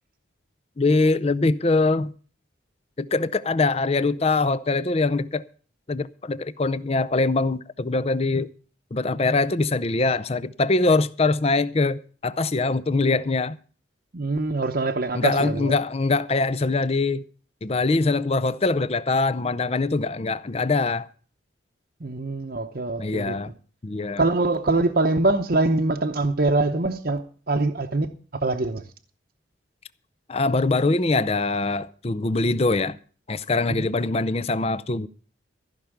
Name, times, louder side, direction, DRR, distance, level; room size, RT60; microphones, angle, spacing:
voice 1, 0.8-2.1 3.0-5.4 5.9-8.5 8.9-13.6 15.1-17.2 17.6-21.1 23.0-23.5 23.8-24.2 30.3-33.0 33.3-35.1, left 3 dB, 30° left, 0.5 m, -23 dB
voice 2, 14.1-15.7 22.0-23.4 24.2-27.2 27.5-28.1 28.4-28.8 33.7-33.9, right 2 dB, 50° right, 0.9 m, -23 dB
15.0 x 5.8 x 8.9 m
head